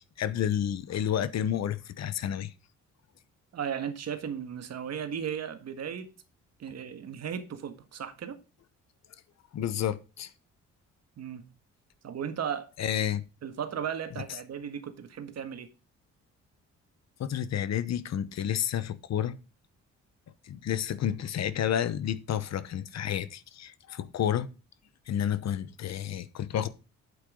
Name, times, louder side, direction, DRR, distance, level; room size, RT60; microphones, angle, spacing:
voice 1, 0.0-2.5 9.5-10.3 12.8-13.2 17.2-19.4 20.4-24.5 25.1-26.7, left 10 dB, 60° left, 1.0 m, -30 dB
voice 2, 3.5-6.1 6.6-8.4 11.2-11.5 12.0-12.7 13.4-15.7, right 8 dB, 60° right, 1.7 m, -36 dB
8.7 x 8.1 x 3.8 m
cardioid pair, 90°, 30 cm